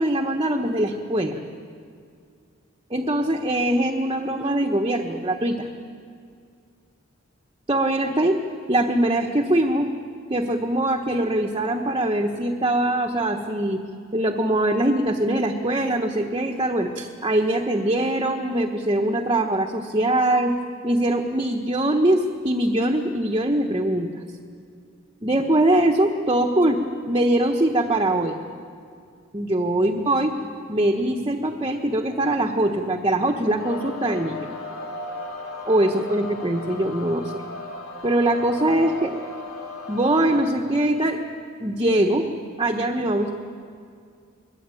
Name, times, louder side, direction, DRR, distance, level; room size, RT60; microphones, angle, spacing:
voice 1, 0.0-1.3 2.9-5.7 7.7-8.4 8.7-9.9 10.3-13.8 14.1-20.5 20.8-24.1 25.2-26.8 27.1-28.3 29.3-30.3 30.7-34.5 35.6-37.4 38.0-39.2 39.9-41.2 41.6-42.2 42.6-43.3, right 1 dB, 25° right, 3 dB, 1.3 m, -22 dB
sound 1, 33.6-40.4, left 2 dB, 85° left, 3.9 m, -36 dB
23.5 x 22.0 x 9.2 m, 2.3 s
head